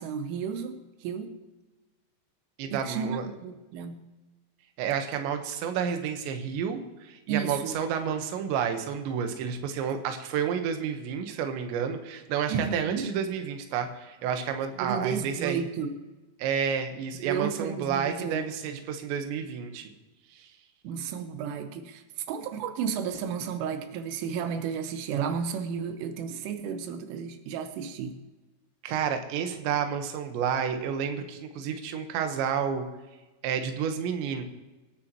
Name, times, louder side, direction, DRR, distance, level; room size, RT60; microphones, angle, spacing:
voice 1, 0.0-1.3 2.7-4.0 7.3-7.8 12.5-13.1 14.8-16.1 17.2-18.8 20.9-28.2, right 7 dB, 90° right, 8 dB, 3.5 m, -33 dB
voice 2, 2.6-3.2 4.8-15.6 16.4-19.9 20.3-20.4 28.8-32.9 33.4-34.4, right 7 dB, 75° right, 6 dB, 3.3 m, -30 dB
25.5 x 10.0 x 3.0 m, 1.1 s
omnidirectional pair, 5.6 m